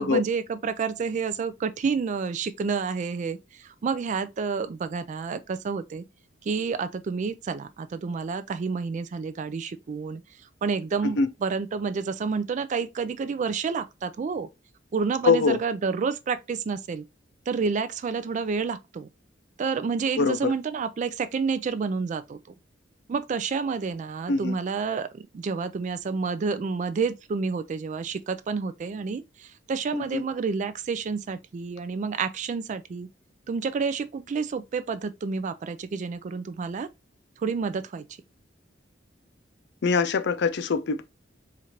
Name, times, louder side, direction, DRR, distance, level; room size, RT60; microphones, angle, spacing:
voice 1, 0.0-6.0 6.4-10.2 10.6-14.5 14.9-17.0 17.5-19.1 19.6-22.4 23.1-33.1 33.5-36.9 37.4-38.0, right 5 dB, 40° right, 0.3 m, -29 dB
voice 2, 15.2-15.6 20.2-20.5 24.3-24.5 29.9-30.2 39.8-41.0, left 4 dB, 65° left, 0.5 m, -23 dB
4.3 x 2.5 x 2.9 m
head